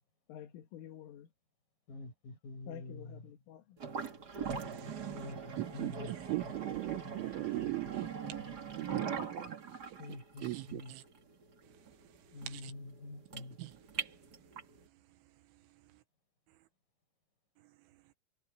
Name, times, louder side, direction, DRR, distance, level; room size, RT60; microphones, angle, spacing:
voice 1, 0.3-1.3 2.7-3.8, left 11 dB, 85° left, 4.4 m, -49 dB
voice 2, 1.9-3.2 5.1-5.4 5.7-6.1 10.0-10.9 12.3-13.6, left 2 dB, 45° left, 9.3 m, -46 dB
sound 1, 3.8-14.8, right 6 dB, 65° right, 0.9 m, -41 dB
voice 3, 4.5-11.0 12.0-12.1 12.4-12.7 13.6-13.8 15.5-15.6 17.6-17.7, right 19 dB, 85° right, 3.6 m, -41 dB
omnidirectional pair, 5.6 m